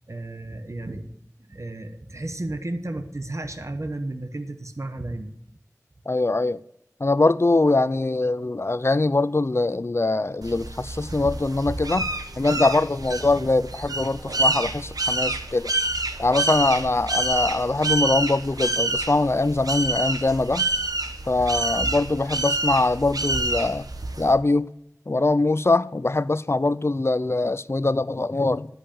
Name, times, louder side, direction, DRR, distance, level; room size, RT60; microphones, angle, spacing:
voice 1, 0.1-1.1 1.5-5.3, right 2 dB, 55° right, 1.1 m, -33 dB
voice 2, 6.1-6.6 7.0-12.1 12.4-15.7 16.2-20.7 21.3-23.9 24.2-24.7 25.1-28.7, left 2 dB, 45° left, 0.4 m, -22 dB
sound 1, 10.4-24.3, right 2 dB, 90° right, 1.0 m, -27 dB
11.0 x 5.5 x 8.5 m
wide cardioid pair, 45°, 6 cm